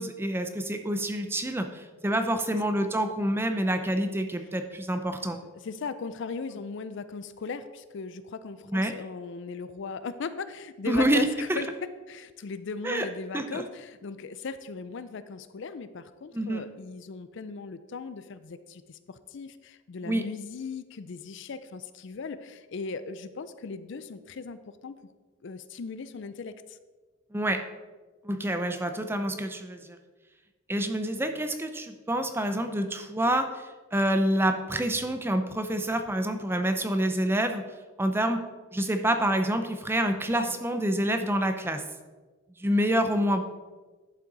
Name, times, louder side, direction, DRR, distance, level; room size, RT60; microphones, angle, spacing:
voice 1, 0.0-5.4 8.7-8.9 10.9-11.6 12.8-13.1 13.3-13.6 16.3-16.6 20.0-20.2 27.3-27.6 28.2-30.0 30.7-37.6 38.0-38.4 38.7-41.8 42.6-43.4, right 1 dB, 10° right, 7 dB, 0.5 m, -27 dB
voice 2, 5.4-25.0 25.4-26.8 40.5-40.6, left 4 dB, 55° left, 13 dB, 0.4 m, -38 dB
11.0 x 5.7 x 4.0 m, 1.3 s
head